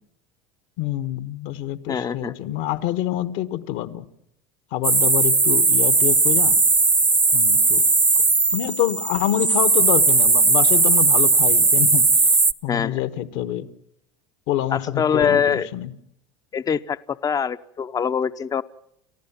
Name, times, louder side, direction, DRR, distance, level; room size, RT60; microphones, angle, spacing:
voice 1, 0.8-4.0 4.7-6.6 7.3-7.8 8.5-12.1 12.6-13.7 14.5-15.9, left 12 dB, 70° left, 12 dB, 1.6 m, -26 dB
voice 2, 1.9-2.3 12.7-13.0 14.7-15.7 16.5-18.6, left 7 dB, 25° left, 13 dB, 0.8 m, -23 dB
sound 1, 4.8-12.5, right 3 dB, 15° right, 0.9 m, -17 dB
30.0 x 15.0 x 7.4 m, 0.76 s
supercardioid pair, 100°, 14 cm